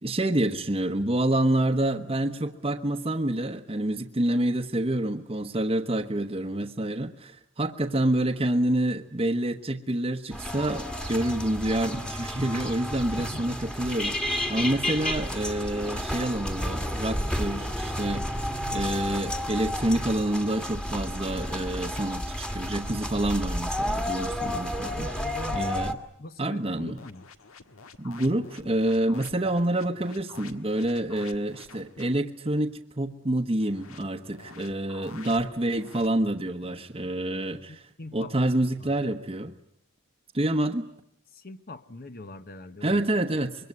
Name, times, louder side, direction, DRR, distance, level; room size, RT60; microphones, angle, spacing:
voice 1, 0.0-25.1 25.5-26.0 26.4-27.0 28.0-37.8 38.1-39.5 40.3-40.8 42.8-43.7, right 1 dB, 25° right, 4 dB, 1.1 m, -27 dB
sound 1, 10.3-25.9, equal, 5° left, 1.6 m, -31 dB
voice 2, 24.8-25.8 26.2-27.3 37.3-39.2 41.3-43.0, left 2 dB, 45° left, 10 dB, 1.1 m, -43 dB
sound 2, 27.0-32.2 33.6-36.1, left 4 dB, 80° left, 1.6 m, -49 dB
25.5 x 23.0 x 9.6 m, 0.74 s
head